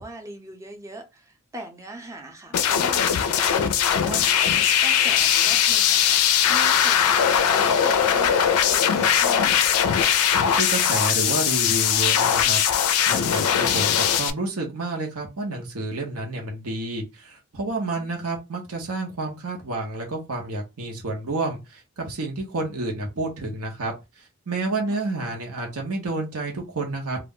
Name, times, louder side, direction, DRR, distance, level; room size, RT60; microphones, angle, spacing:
voice 1, 0.0-6.2 6.5-9.9 24.9-25.0, right 1 dB, 15° right, 3 dB, 0.5 m, -40 dB
sound 1, 2.5-14.3, left 8 dB, 85° left, 0.4 m, -20 dB
voice 2, 10.3-27.2, right 2 dB, 80° right, 0 dB, 0.8 m, -30 dB
2.3 x 2.1 x 3.6 m, 0.25 s
head